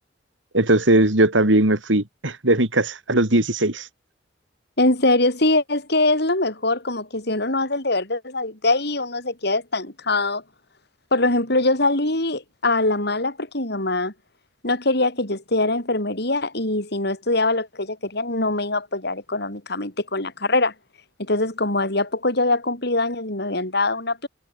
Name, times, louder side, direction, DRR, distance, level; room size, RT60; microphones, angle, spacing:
voice 1, 0.5-3.9, right 1 dB, 80° right, 3.5 m, -19 dB
voice 2, 4.8-10.4 11.1-14.1 14.6-20.7 21.2-24.3, left 2 dB, 60° left, 7.1 m, -23 dB
head